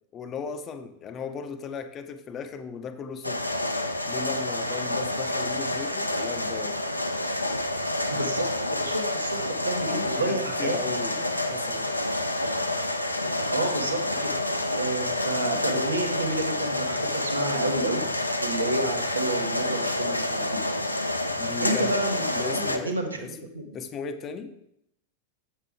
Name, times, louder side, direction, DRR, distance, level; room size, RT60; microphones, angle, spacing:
voice 1, 0.1-3.6 4.0-6.8 9.9-11.2 11.5-11.9 21.4-21.9 22.3-23.4 23.7-24.6, left 6 dB, 30° left, 8 dB, 0.7 m, -36 dB
sound 1, 3.2-22.8, left 1 dB, 85° left, 0.5 m, -28 dB
voice 2, 8.1-11.2 13.5-14.3 14.8-18.0 18.4-20.6 21.6-23.8, right 1 dB, 80° right, 4 dB, 1.1 m, -30 dB
7.3 x 6.5 x 3.5 m, 0.78 s
figure-of-eight pair, 90°, 0 cm